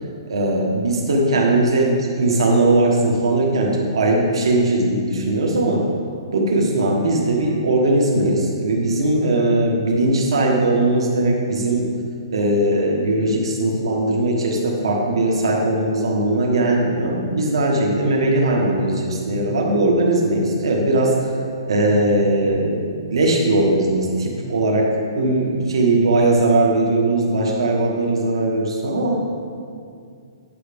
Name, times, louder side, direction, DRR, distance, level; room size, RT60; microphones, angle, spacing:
voice 1, 0.3-5.9 6.3-11.9 12.3-21.3 21.6-29.2, right 2 dB, 75° right, -1 dB, 1.3 m, -19 dB
9.1 x 5.9 x 5.1 m, 2.3 s
hypercardioid pair, 175°, 3 cm